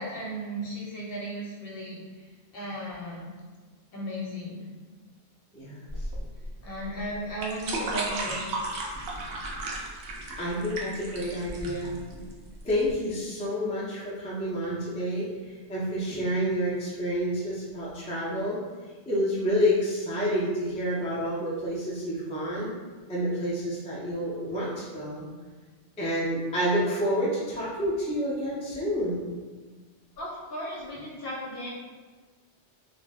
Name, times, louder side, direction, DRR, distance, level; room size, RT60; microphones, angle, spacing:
voice 1, 0.0-2.0 2.5-3.3 3.9-4.6 6.6-8.4 30.2-31.7, equal, 60° left, -5 dB, 0.8 m, -35 dB
voice 2, 5.5-5.9 10.4-12.3 12.6-18.6 19.1-22.7 23.1-25.3 26.0-29.2, equal, 10° left, -8 dB, 0.4 m, -29 dB
sound 1, 5.9-12.9, right 2 dB, 70° right, 0.8 m, -34 dB
2.5 x 2.0 x 3.4 m, 1.4 s
omnidirectional pair, 1.2 m